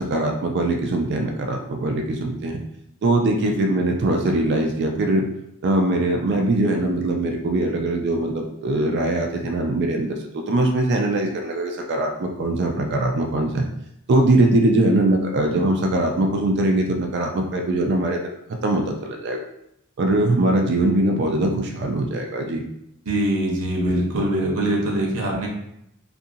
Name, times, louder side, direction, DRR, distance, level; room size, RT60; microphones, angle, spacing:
voice 1, 0.0-2.6 3.0-5.3 5.6-13.6 14.1-18.3 18.6-19.5 20.0-22.6, right 2 dB, 50° right, 2 dB, 0.3 m, -21 dB
voice 2, 23.1-25.5, right 1 dB, 85° right, -1 dB, 0.8 m, -23 dB
2.7 x 2.6 x 2.5 m, 0.79 s
head